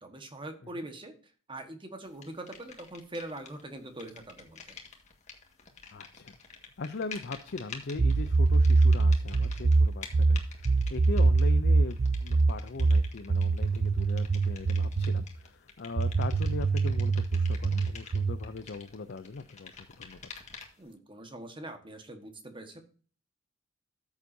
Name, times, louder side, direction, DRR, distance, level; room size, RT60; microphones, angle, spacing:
voice 1, 0.0-1.1 1.5-4.8 20.8-22.8, right 1 dB, 25° right, 6 dB, 1.4 m, -43 dB
sound 1, 2.2-3.6 3.9-20.9, left 5 dB, 35° left, 1.7 m, -49 dB
voice 2, 5.9-20.2, left 3 dB, 50° left, 10 dB, 0.5 m, -40 dB
sound 2, 8.0-15.3 16.0-18.4, right 3 dB, 40° right, 0.4 m, -24 dB
14.0 x 7.2 x 2.7 m, 0.41 s
head